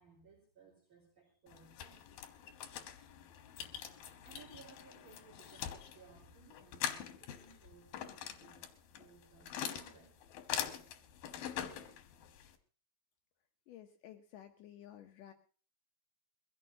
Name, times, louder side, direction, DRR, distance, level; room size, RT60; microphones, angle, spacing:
voice 1, 0.0-2.1 4.2-8.6 8.9-10.1, right 4 dB, 35° right, -5 dB, 5.3 m, -61 dB
sound 1, 1.5-12.6, left 9 dB, 90° left, 3.1 m, -44 dB
voice 2, 13.7-15.3, left 11 dB, 75° left, 5 dB, 2.4 m, -54 dB
22.0 x 16.0 x 2.8 m, 0.39 s
omnidirectional pair, 4.1 m